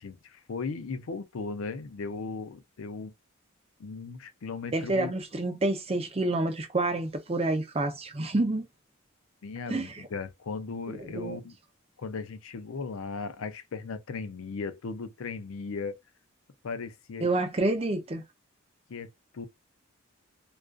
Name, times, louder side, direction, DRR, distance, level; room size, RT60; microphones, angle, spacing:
voice 1, 0.0-3.1 3.8-5.1 9.4-11.6 12.0-16.0 16.6-17.2 18.9-19.5, left 4 dB, 80° left, 0.5 m, -37 dB
voice 2, 4.7-8.7 9.7-9.9 11.0-11.4 17.2-18.2, right 2 dB, 30° right, 0.5 m, -28 dB
2.4 x 2.3 x 2.3 m
head